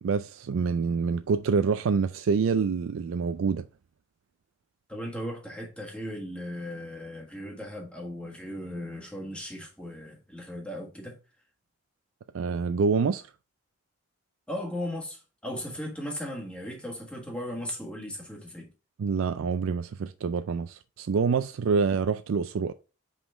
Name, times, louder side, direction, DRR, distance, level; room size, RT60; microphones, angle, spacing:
voice 1, 0.0-3.6 12.3-13.2 19.0-22.7, right 5 dB, 75° right, 0.4 m, -26 dB
voice 2, 4.9-11.2 14.5-18.7, left 1 dB, 5° left, 1.4 m, -37 dB
5.5 x 5.1 x 3.4 m
head